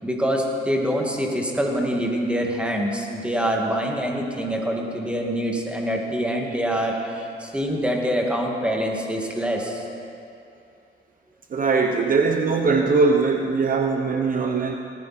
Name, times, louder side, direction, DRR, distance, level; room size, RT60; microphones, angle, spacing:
voice 1, 0.0-9.8, equal, 5° right, 0 dB, 2.3 m, -25 dB
voice 2, 11.5-14.7, right 4 dB, 45° right, 4 dB, 0.9 m, -21 dB
18.0 x 14.5 x 4.4 m, 2.6 s
cardioid pair, 90°, 20 cm